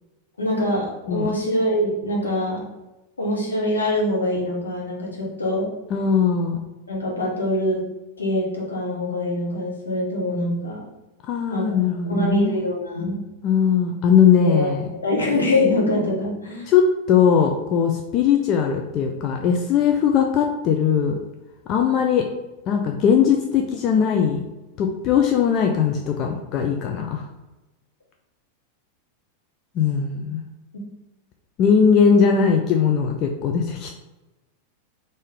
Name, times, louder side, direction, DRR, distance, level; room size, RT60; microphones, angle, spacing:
voice 1, 0.4-2.6 3.2-5.7 6.9-7.8 8.2-10.8 11.5-11.6 12.1-13.2 14.4-14.7 15.0-16.7, left 1 dB, 75° left, -4 dB, 1.1 m, -24 dB
voice 2, 5.9-6.6 11.2-12.5 13.4-14.9 16.7-21.2 21.7-22.3 22.7-24.4 24.8-27.3 29.8-30.4 31.6-33.9, left 7 dB, 35° left, 3 dB, 0.3 m, -19 dB
3.5 x 2.6 x 3.5 m, 1.0 s
figure-of-eight pair, 90°, 0 cm